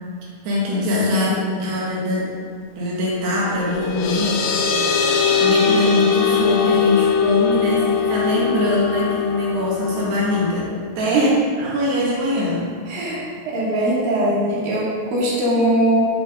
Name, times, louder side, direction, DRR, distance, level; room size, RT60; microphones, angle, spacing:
voice 1, 0.4-2.3 2.8-4.4 5.4-11.3 11.6-12.7, left 1 dB, 90° right, -6 dB, 4.4 m, -22 dB
voice 2, 1.3-1.7 11.1-11.3 12.9-13.2 13.5-16.0, right 1 dB, 50° right, -7 dB, 4.2 m, -20 dB
sound 1, 3.4-10.6, left 6 dB, 70° left, 2.3 m, -21 dB
14.5 x 8.3 x 4.0 m, 2.1 s
omnidirectional pair, 4.7 m